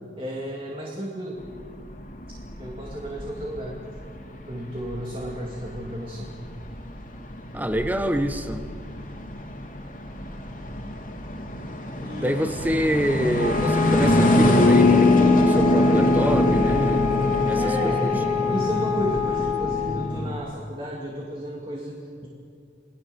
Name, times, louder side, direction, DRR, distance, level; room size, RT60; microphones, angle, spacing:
voice 1, 0.2-1.4 2.6-3.9 4.5-6.3 12.0-12.5 17.6-22.3, equal, 30° right, -2 dB, 2.5 m, -33 dB
sound 1, 1.4-20.4, left 1 dB, 50° left, 3.1 m, -24 dB
voice 2, 7.5-8.7 12.2-17.1 17.5-17.9 18.5-18.7, equal, 10° right, 8 dB, 1.2 m, -26 dB
Wind instrument woodwind instrument, 13.3-20.0, left 7 dB, 85° left, 2.6 m, -26 dB
29.0 x 19.0 x 7.1 m, 2.3 s
head